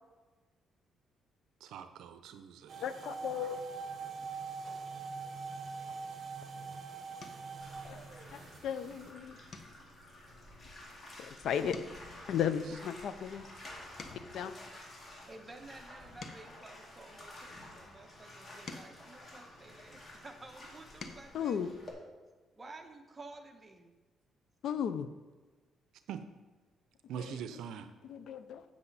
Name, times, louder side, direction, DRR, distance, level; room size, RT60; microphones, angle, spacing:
voice 1, 1.6-2.8 26.1-26.2 27.1-27.9, right 8 dB, 85° right, 9 dB, 0.5 m, -43 dB
sound 1, 2.7-9.1, right 5 dB, 45° right, 1.5 m, -43 dB
voice 2, 2.8-3.6 7.9-8.0 8.3-9.4 11.2-11.8 12.3-13.4 14.3-14.5 21.3-21.7 24.6-25.1 27.1-27.6 28.0-28.6, left 8 dB, 75° left, 12 dB, 0.6 m, -35 dB
voice 3, 3.3-4.4 15.3-21.6 22.5-23.9, right 2 dB, 20° right, 4 dB, 1.2 m, -53 dB
sound 2, 7.2-7.6 8.1-8.4 8.8-9.0 9.5-11.3 11.6-14.5 15.1-17.6 18.2-20.1 20.6-21.4 22.8-22.9 23.2-23.3, left 4 dB, 55° left, 1.1 m, -52 dB
Bathtub (filling or washing), 7.6-21.9, left 1 dB, 35° left, 2.2 m, -52 dB
8.7 x 7.8 x 4.1 m, 1.3 s
cardioid pair, 90°, 0 cm